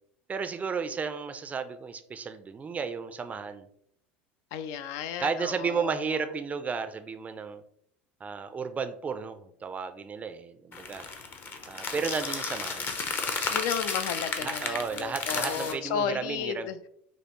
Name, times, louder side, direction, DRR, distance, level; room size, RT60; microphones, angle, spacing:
voice 1, 0.3-3.7 5.2-7.6 8.2-11.1 11.7-13.0 14.4-16.7, right 5 dB, 25° right, 9 dB, 0.4 m, -33 dB
voice 2, 4.5-6.2 13.5-16.8, left 7 dB, 65° left, 10 dB, 0.4 m, -33 dB
sound 1, 10.7-15.7, left 4 dB, 35° left, 0.7 m, -33 dB
5.1 x 2.0 x 3.0 m, 0.69 s
supercardioid pair, 100°, 6 cm